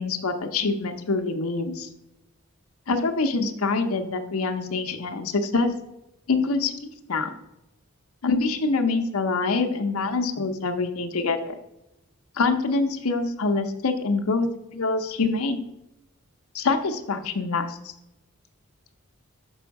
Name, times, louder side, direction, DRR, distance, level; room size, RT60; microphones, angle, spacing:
voice 1, 0.0-1.9 2.9-5.7 6.3-6.7 7.1-7.3 8.2-11.5 12.4-14.5 14.7-15.6 16.5-17.8, left 3 dB, 85° left, 5 dB, 0.7 m, -25 dB
6.1 x 5.6 x 4.6 m, 0.87 s
head